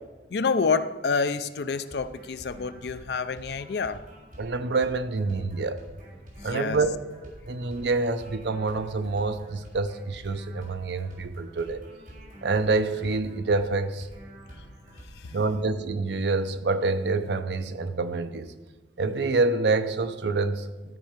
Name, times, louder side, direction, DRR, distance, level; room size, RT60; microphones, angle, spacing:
voice 1, 0.3-4.0 6.4-6.9 14.6-14.7 15.1-15.4, left 5 dB, 65° left, 13 dB, 0.5 m, -28 dB
sound 1, 1.7-15.4, right 1 dB, 50° right, 3.6 m, -48 dB
voice 2, 4.4-5.8 6.4-6.9 7.5-11.8 12.4-14.1 15.3-18.5 19.0-20.7, right 3 dB, 70° right, 10 dB, 0.6 m, -27 dB
13.5 x 5.5 x 5.1 m, 1.2 s
head